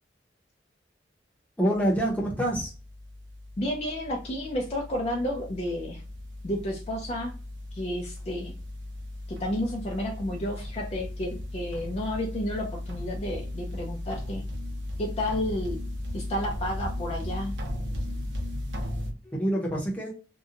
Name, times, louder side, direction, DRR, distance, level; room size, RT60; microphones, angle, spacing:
voice 1, 1.6-2.7 19.2-20.1, right 1 dB, 10° left, -2 dB, 0.8 m, -26 dB
sound 1, 1.7-19.1, left 1 dB, 90° right, 0.7 m, -36 dB
voice 2, 3.6-6.0 6.4-7.3 7.7-8.5 9.3-14.4 15.0-15.8 16.1-17.5, left 1 dB, 35° left, 0 dB, 0.5 m, -31 dB
2.8 x 2.2 x 2.4 m, 0.35 s
head